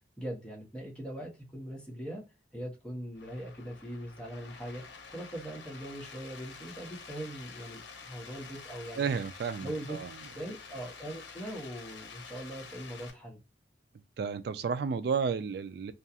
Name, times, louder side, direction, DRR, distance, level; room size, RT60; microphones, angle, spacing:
voice 1, 0.2-2.2 2.5-4.8 5.1-9.1 9.6-10.0 10.3-13.4, right 1 dB, 5° left, 0.9 m, -41 dB
sound 1, 3.1-13.1, left 5 dB, 80° left, 0.6 m, -48 dB
voice 2, 9.0-10.1 14.2-15.9, right 6 dB, 60° right, 0.3 m, -32 dB
2.4 x 2.3 x 2.7 m
head